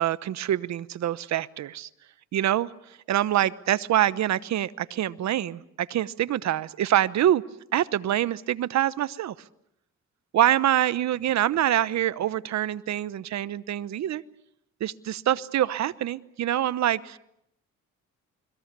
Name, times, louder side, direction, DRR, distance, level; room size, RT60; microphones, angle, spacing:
voice 1, 0.0-1.9 2.3-2.7 3.1-7.4 7.7-9.3 10.3-14.2 14.8-17.2, right 12 dB, 65° right, 17 dB, 1.0 m, -25 dB
29.5 x 21.5 x 6.8 m, 0.78 s
cardioid pair, 90°, 30 cm